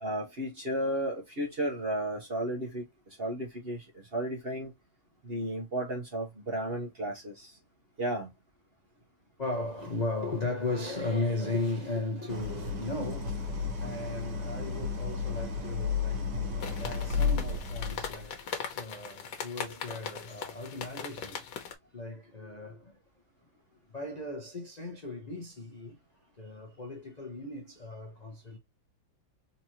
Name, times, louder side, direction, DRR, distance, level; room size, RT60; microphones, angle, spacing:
voice 1, 0.0-2.8 3.2-4.7 5.2-7.5 8.0-8.3, right 1 dB, 40° right, 1.0 m, -33 dB
voice 2, 9.4-21.5 21.9-23.0 23.9-26.0 26.4-28.6, left 2 dB, 40° left, 0.6 m, -36 dB
Idling, 12.3-18.4, left 5 dB, 85° right, 2.0 m, -33 dB
sound 1, 16.6-21.7, left 7 dB, 85° left, 1.6 m, -40 dB
4.2 x 3.0 x 2.9 m
omnidirectional pair, 2.1 m